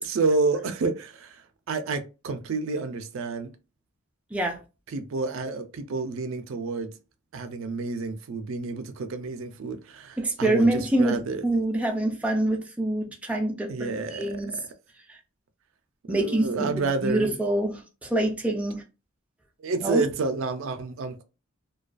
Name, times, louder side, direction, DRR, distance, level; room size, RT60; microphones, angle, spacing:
voice 1, 0.0-1.4 1.7-3.5 4.9-6.9 7.3-11.4 13.7-14.4 16.1-17.4 19.6-21.2, right 3 dB, 75° right, 0.4 m, -29 dB
voice 2, 10.2-14.6 15.1-15.2 16.1-18.8 19.7-20.0, right 1 dB, 5° right, 0.4 m, -26 dB
2.3 x 2.2 x 2.4 m
head